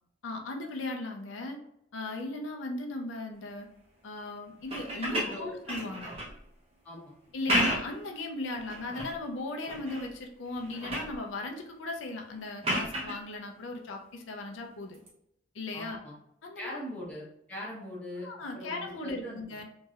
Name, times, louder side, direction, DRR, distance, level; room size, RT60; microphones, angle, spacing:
voice 1, 0.2-1.6 1.9-3.7 4.0-6.1 7.3-15.0 15.5-16.0 16.4-16.8 18.2-19.6, left 2 dB, 90° left, 2 dB, 0.5 m, -37 dB
sound 1, 4.6-6.4 7.3-8.0 8.5-9.2 9.7-10.1 10.5-11.2 12.6-13.2 14.9-15.1, equal, 30° right, 0.8 m, -32 dB
voice 2, 5.1-5.6 6.8-7.1 15.7-16.1 16.5-18.3 18.5-19.4, left 1 dB, 10° left, -6 dB, 0.8 m, -40 dB
3.0 x 2.7 x 2.4 m, 0.78 s
head